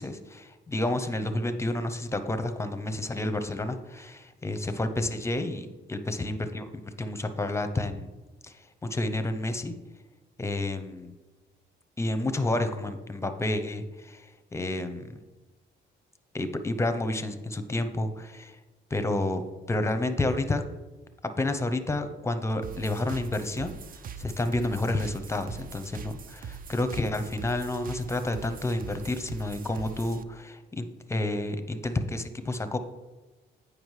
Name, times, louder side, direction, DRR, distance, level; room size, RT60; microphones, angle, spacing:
voice 1, 0.0-8.1 8.4-9.7 10.4-11.1 12.0-15.2 16.3-18.6 18.9-19.4 19.7-20.6 21.4-23.7 24.2-32.8, left 2 dB, 15° left, 9 dB, 0.6 m, -30 dB
sound 1, 22.6-30.2, right 7 dB, 45° right, 0.4 m, -42 dB
9.0 x 5.0 x 3.2 m, 1.2 s
cardioid pair, 90°, 20 cm